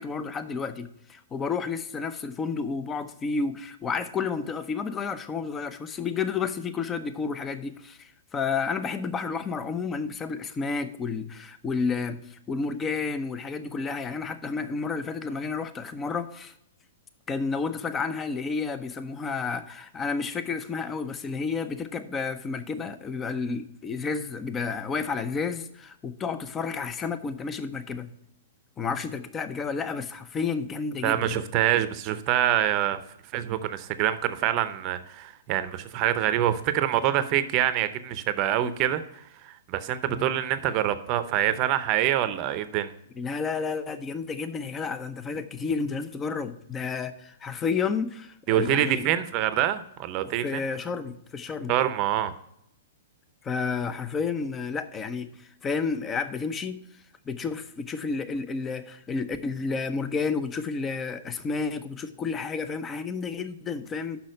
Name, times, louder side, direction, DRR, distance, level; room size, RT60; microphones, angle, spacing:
voice 1, 0.0-16.5 17.3-28.1 28.8-31.4 40.1-40.3 43.2-49.1 50.4-51.7 53.4-56.8 57.3-64.2, left 5 dB, 20° left, 11 dB, 0.7 m, -31 dB
voice 2, 31.0-33.0 33.3-42.9 48.5-50.6 51.7-52.3, right 11 dB, 40° right, 12 dB, 0.7 m, -25 dB
6.3 x 5.8 x 6.4 m, 0.77 s
hypercardioid pair, 125°, 0 cm